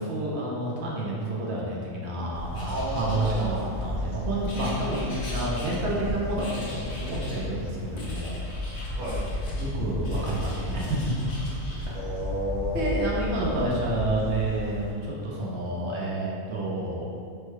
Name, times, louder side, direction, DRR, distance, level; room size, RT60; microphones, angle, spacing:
voice 1, 0.0-8.4 8.7-8.9 9.6-11.1 11.9-12.0 12.7-17.1, right 1 dB, 65° right, -4 dB, 0.7 m, -29 dB
sound 1, 2.3-14.9, left 1 dB, 45° right, 1.8 m, -34 dB
Writing, 2.5-3.9 4.4-6.1 6.4-7.4 8.0-9.7 10.0-11.9, left 1 dB, 55° left, 0.6 m, -42 dB
voice 2, 2.7-3.6 8.9-9.2 11.9-12.9, equal, 20° right, -11 dB, 0.9 m, -32 dB
3.3 x 2.1 x 3.0 m, 2.3 s
omnidirectional pair, 1.5 m